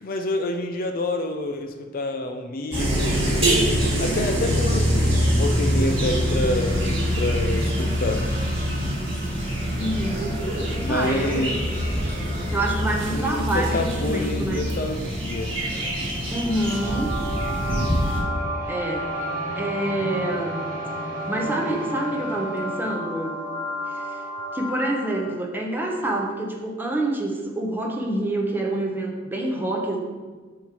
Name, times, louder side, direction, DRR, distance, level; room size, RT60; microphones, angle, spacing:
voice 1, 0.0-3.7 4.0-8.3 10.7-11.7 13.1-15.6, left 2 dB, 50° left, 6 dB, 0.5 m, -28 dB
sound 1, 2.7-18.2, equal, 30° right, 2.0 m, -24 dB
sound 2, 6.0-22.9, equal, 45° right, 1.3 m, -38 dB
voice 2, 9.7-10.4 10.8-11.5 12.5-14.6 16.3-17.1 18.7-19.1 19.5-20.6 21.3-23.4 23.9-24.2 24.5-30.0, right 1 dB, 10° right, 0 dB, 0.8 m, -27 dB
sound 3, 16.5-25.3, equal, 15° left, 1.4 m, -31 dB
7.0 x 3.2 x 6.0 m, 1.4 s
head